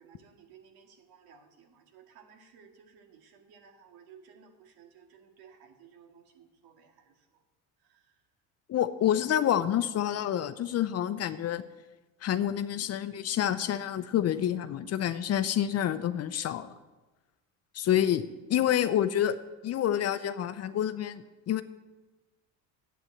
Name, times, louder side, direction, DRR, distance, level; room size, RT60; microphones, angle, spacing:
voice 1, 0.0-7.0 18.2-18.3, right 7 dB, 70° right, 4 dB, 2.0 m, -56 dB
voice 2, 8.7-11.6 12.2-16.7 17.7-18.2 18.5-19.4 19.6-21.6, left 10 dB, 40° left, 12 dB, 0.7 m, -28 dB
9.6 x 8.9 x 7.8 m, 1.2 s
cardioid pair, 120°, 38 cm